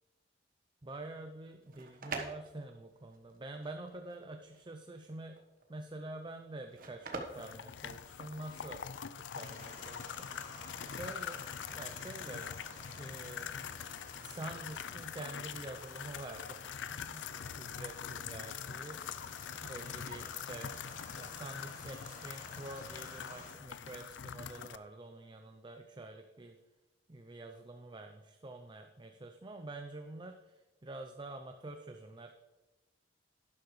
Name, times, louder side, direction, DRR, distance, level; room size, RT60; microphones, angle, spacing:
voice 1, 0.8-5.4 5.7-8.8 9.2-11.4 11.7-12.5 12.9-13.8 14.2-19.0 19.6-20.7 21.1-26.6 27.1-32.4, right 2 dB, 25° right, 5 dB, 0.6 m, -47 dB
sound 1, 1.5-8.5, right 3 dB, 50° right, 1.3 m, -46 dB
sound 2, 7.3-24.8, left 8 dB, 80° left, 0.5 m, -44 dB
sound 3, 9.3-23.5, left 2 dB, 45° left, 2.2 m, -52 dB
11.5 x 10.5 x 3.2 m, 1.1 s
head